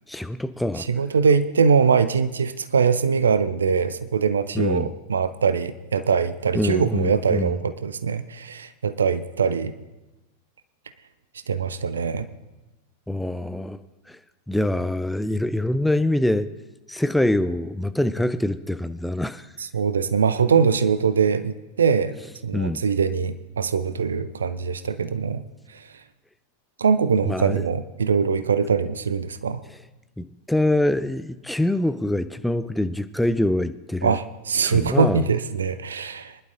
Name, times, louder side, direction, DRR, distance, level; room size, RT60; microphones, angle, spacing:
voice 1, 0.1-0.9 4.6-4.9 6.5-7.6 13.1-13.8 14.1-14.2 14.5-16.5 16.9-19.5 22.5-22.8 27.2-27.6 30.2-34.2 34.6-35.2, left 1 dB, 5° left, 0.5 m, -24 dB
voice 2, 0.8-9.7 11.5-12.3 19.6-22.2 22.4-25.4 25.7-25.9 26.8-29.6 34.0-36.4, right 6 dB, 70° right, 0.7 m, -22 dB
23.5 x 11.5 x 2.7 m
figure-of-eight pair, 90°, 0 cm